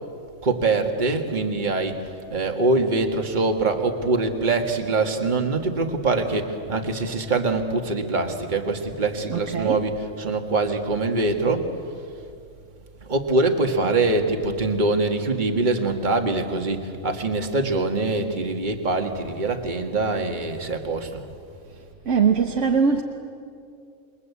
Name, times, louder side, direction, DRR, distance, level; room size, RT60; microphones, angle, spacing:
voice 1, 0.4-2.0 2.3-11.7 13.1-21.2, right 3 dB, 35° right, 1.8 m, -24 dB
voice 2, 9.3-9.9 21.7-23.0, right 6 dB, 65° right, 1.5 m, -22 dB
28.0 x 22.0 x 8.3 m
omnidirectional pair, 1.4 m